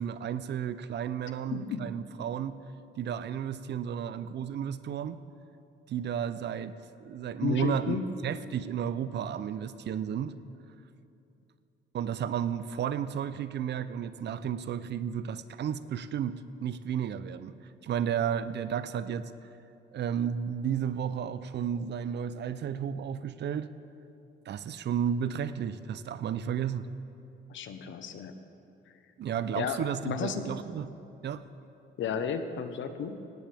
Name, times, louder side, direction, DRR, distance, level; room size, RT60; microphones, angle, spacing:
voice 1, 0.0-2.6 3.0-5.2 5.9-8.0 8.2-10.3 11.9-17.6 17.8-19.3 19.9-23.7 24.5-26.9 29.2-30.9 31.2-31.5, right 8 dB, 60° right, 14 dB, 0.7 m, -33 dB
voice 2, 1.5-1.9 7.4-8.0 27.5-28.3 29.6-30.5 32.0-33.2, left 7 dB, 70° left, 8 dB, 1.2 m, -33 dB
17.5 x 17.5 x 3.6 m, 2.7 s
cardioid pair, 90°, 20 cm